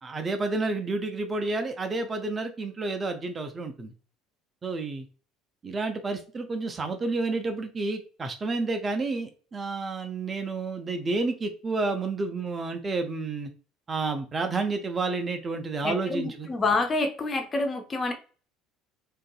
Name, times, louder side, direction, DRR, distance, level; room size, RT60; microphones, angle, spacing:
voice 1, 0.0-3.9 4.6-5.1 5.6-13.5 13.9-16.5, right 3 dB, 30° right, 6 dB, 0.5 m, -30 dB
voice 2, 15.8-18.1, left 3 dB, 25° left, 5 dB, 0.6 m, -27 dB
2.6 x 2.5 x 2.3 m, 0.37 s
figure-of-eight pair, 60°, 0 cm